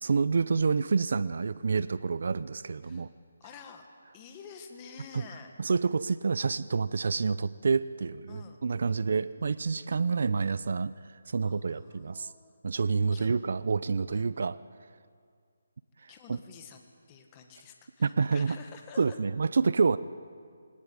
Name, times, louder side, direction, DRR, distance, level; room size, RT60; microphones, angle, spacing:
voice 1, 0.0-3.1 5.6-10.9 11.3-12.3 12.6-14.6 16.3-16.4 18.0-18.6 19.0-20.0, right 5 dB, 60° right, 15 dB, 0.6 m, -28 dB
voice 2, 2.8-3.1 3.4-3.9 4.1-5.5 8.3-8.6 11.4-12.5 13.1-13.4 14.1-14.3 16.1-19.2, left 6 dB, 20° left, 4 dB, 1.6 m, -49 dB
21.5 x 18.5 x 9.7 m, 2.1 s
hypercardioid pair, 170°, 0 cm